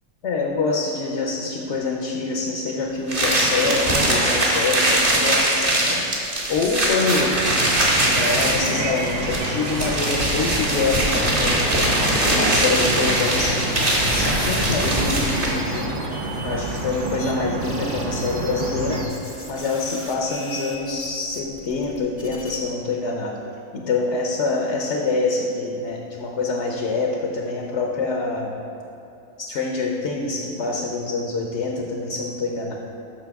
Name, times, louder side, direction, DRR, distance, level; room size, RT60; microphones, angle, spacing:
voice 1, 0.2-6.0 6.5-7.4 7.9-11.8 12.3-15.9 16.4-19.0 19.5-23.4 23.7-28.6 29.4-32.7, left 3 dB, 60° left, 0 dB, 1.0 m, -25 dB
sound 1, 3.1-15.7, right 1 dB, 40° right, 1.7 m, -21 dB
sound 2, 7.2-19.0, right 1 dB, 65° right, 1.1 m, -29 dB
sound 3, 15.2-17.3 17.6-22.6, left 1 dB, 10° left, 0.8 m, -40 dB
11.0 x 6.6 x 3.5 m, 2.8 s
omnidirectional pair, 1.5 m